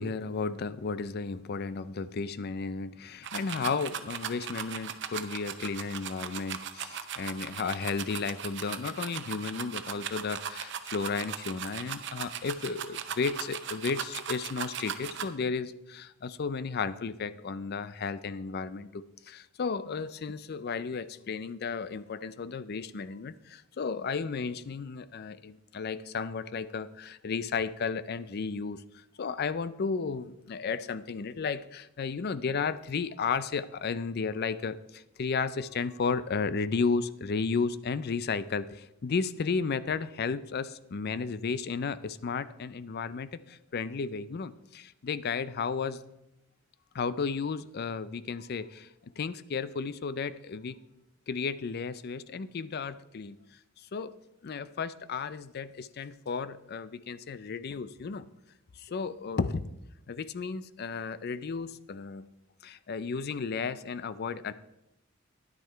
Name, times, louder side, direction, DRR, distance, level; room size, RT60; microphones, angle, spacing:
voice 1, 0.0-46.0 46.9-48.9 49.2-50.8 51.3-53.4 53.8-54.1 54.4-58.3 58.8-59.7 60.1-62.3 62.6-64.5, left 5 dB, 50° left, 15 dB, 0.4 m, -33 dB
sound 1, 3.2-15.2, right 8 dB, 65° right, 0.7 m, -38 dB
10.5 x 9.4 x 4.5 m, 0.89 s
head